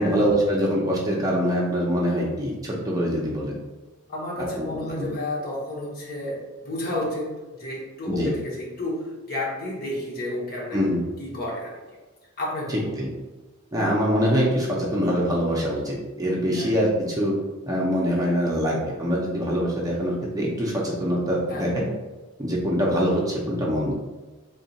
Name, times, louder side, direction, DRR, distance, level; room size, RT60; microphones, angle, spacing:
voice 1, 0.0-3.5 4.4-5.1 8.1-8.3 10.7-11.0 12.7-13.1 13.7-17.3 17.7-21.9 22.4-23.9, equal, 15° right, -4 dB, 0.6 m, -24 dB
voice 2, 4.1-10.8 11.2-11.8 12.4-12.9 16.5-16.7 21.5-21.7, left 1 dB, 45° left, -4 dB, 1.0 m, -31 dB
3.6 x 2.4 x 4.0 m, 1.2 s
head